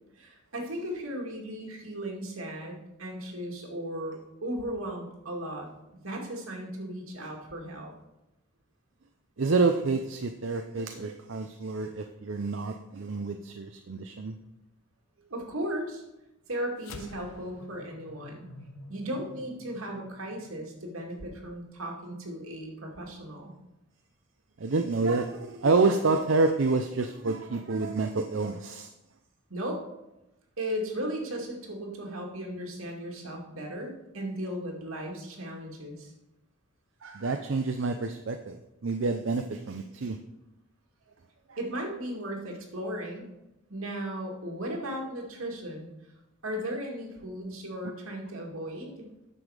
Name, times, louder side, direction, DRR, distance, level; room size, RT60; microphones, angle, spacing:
voice 1, 0.1-7.9 15.3-16.0 16.5-18.5 18.9-23.5 29.5-29.8 30.6-36.1 41.6-43.3 43.7-45.9 46.4-49.1, equal, 80° right, 0 dB, 2.3 m, -36 dB
voice 2, 9.4-14.4 24.6-28.9 37.0-38.6 38.8-40.2, right 3 dB, 60° right, 6 dB, 0.6 m, -28 dB
sound 1, 16.8-21.4, left 2 dB, 85° left, 0.9 m, -49 dB
9.8 x 7.0 x 4.9 m, 0.93 s
head